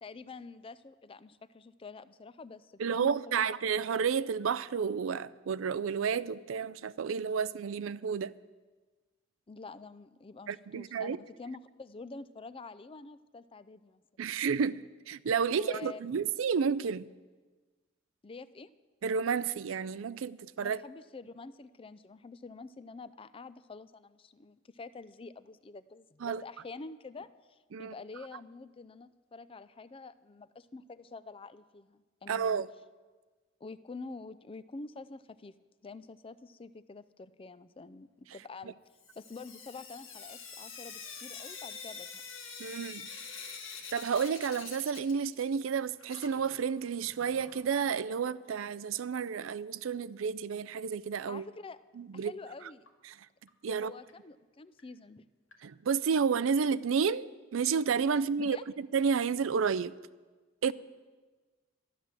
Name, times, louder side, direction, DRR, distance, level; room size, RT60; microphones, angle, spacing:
voice 1, 0.0-3.5 9.5-14.0 15.5-16.0 18.2-18.7 20.6-32.6 33.6-35.5 35.8-38.8 39.2-42.1 51.3-51.8 52.1-52.8 53.7-55.3 58.1-58.6, left 3 dB, 25° left, 0.4 m, -47 dB
voice 2, 2.8-8.3 10.5-11.2 14.2-17.1 19.0-20.8 26.2-26.4 27.7-27.9 32.3-32.7 42.6-43.1 43.9-51.4 52.0-52.3 53.6-53.9 55.6-57.3 57.5-59.9 60.6-60.7, right 6 dB, 85° right, 0.4 m, -31 dB
Sink (filling or washing) / Drip, 39.0-45.7 46.0-47.9 49.1-49.2 49.5-49.6 49.9-50.0 52.9-53.0 53.5-53.6 54.1-54.2 54.8-54.9 55.5-55.6 56.5-56.6, left 5 dB, 85° left, 1.9 m, -46 dB
13.0 x 11.0 x 7.4 m
head